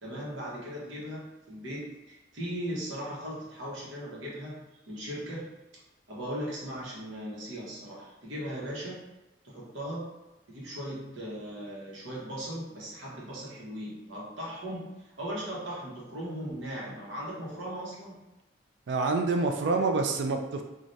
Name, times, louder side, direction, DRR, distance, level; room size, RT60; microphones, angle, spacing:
voice 1, 0.0-5.5 6.1-9.0 9.4-10.1 10.5-18.2, equal, 90° right, -5 dB, 1.1 m, -38 dB
voice 2, 18.9-20.6, right 3 dB, 65° right, 4 dB, 0.4 m, -27 dB
3.2 x 2.4 x 2.6 m, 1.0 s
head